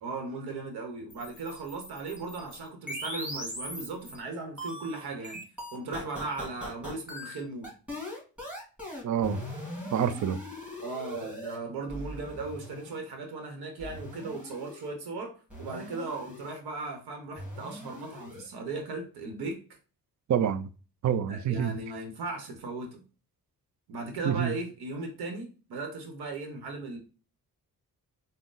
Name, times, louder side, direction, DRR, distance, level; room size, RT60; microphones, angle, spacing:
voice 1, 0.0-5.4 5.7-7.7 10.8-15.3 15.6-19.6 21.3-23.0 23.9-27.0, right 3 dB, 90° right, 0.9 m, -37 dB
sound 1, 1.1-4.2 4.6-11.6 11.9-13.0 13.8-14.9 15.5-16.6 17.4-18.5, left 1 dB, 5° right, 1.9 m, -40 dB
voice 2, 9.0-9.4 9.9-10.4 20.3-20.7 21.0-21.7 24.2-24.5, right 9 dB, 50° right, 0.4 m, -27 dB
3.7 x 2.1 x 3.7 m
cardioid pair, 70°, 37 cm